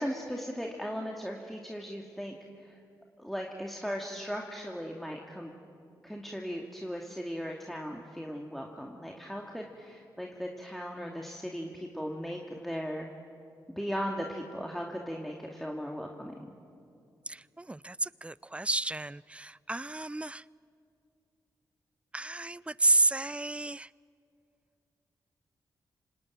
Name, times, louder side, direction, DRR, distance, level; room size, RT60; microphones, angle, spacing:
voice 1, 0.0-2.4 2.6-2.8 3.2-5.5 6.0-13.1 13.7-16.5, equal, ahead, 0 dB, 2.4 m, -37 dB
voice 2, 17.3-20.4 22.1-23.9, right 2 dB, 15° right, 22 dB, 0.5 m, -30 dB
26.5 x 19.0 x 9.1 m, 2.5 s
supercardioid pair, 45°, 9 cm